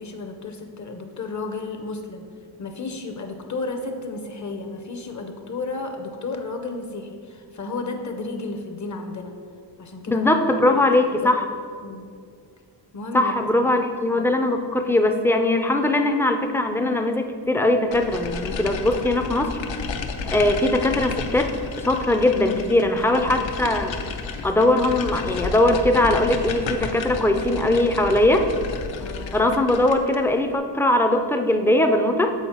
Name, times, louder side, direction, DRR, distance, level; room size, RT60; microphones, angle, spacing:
voice 1, 0.0-2.2 2.6-9.3 9.8-10.3 10.6-10.8 11.2-11.3 11.8-12.0 12.9-13.5 14.1-14.3 29.0-29.4, left 3 dB, 40° left, 5 dB, 0.6 m, -32 dB
voice 2, 10.1-11.5 13.1-19.5 20.3-21.5 21.8-24.0 24.4-28.5 29.3-32.3, left 1 dB, 5° left, 5 dB, 0.3 m, -20 dB
sound 1, 17.9-30.3, left 5 dB, 80° left, 0.7 m, -32 dB
7.1 x 4.2 x 4.3 m, 2.2 s
wide cardioid pair, 110°, 44 cm